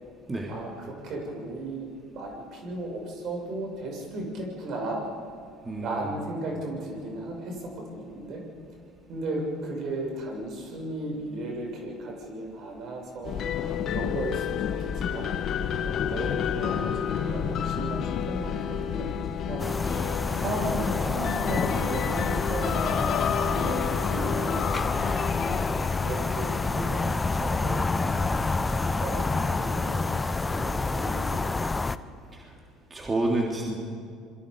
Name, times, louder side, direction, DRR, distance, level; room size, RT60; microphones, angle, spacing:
voice 1, 0.5-5.1 5.8-8.4 9.1-13.5 13.9-15.3 15.8-19.1 19.5-19.7 20.3-24.6 26.0-31.9, right 2 dB, 55° right, 1 dB, 6.9 m, -35 dB
sound 1, 13.2-29.8, left 8 dB, 50° left, 1.3 m, -30 dB
sound 2, 19.6-32.0, left 3 dB, 20° left, 0.8 m, -28 dB
voice 2, 32.9-33.9, right 2 dB, 25° right, -1 dB, 3.3 m, -28 dB
27.0 x 22.5 x 5.4 m, 2.3 s
hypercardioid pair, 70°, 0 cm